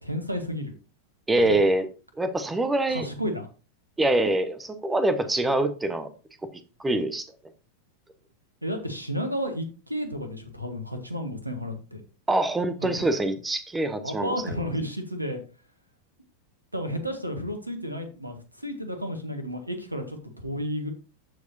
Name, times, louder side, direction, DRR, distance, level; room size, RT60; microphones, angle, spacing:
voice 1, 0.0-0.7 1.4-1.6 2.9-3.5 8.6-12.0 12.8-13.0 14.0-15.4 16.7-20.9, equal, 85° right, 7 dB, 1.4 m, -32 dB
voice 2, 1.3-1.9 2.2-3.1 4.0-6.1 6.8-7.3 12.3-14.6, right 2 dB, 10° right, 11 dB, 1.0 m, -24 dB
14.0 x 4.7 x 2.7 m, 0.34 s
figure-of-eight pair, 90°, 0 cm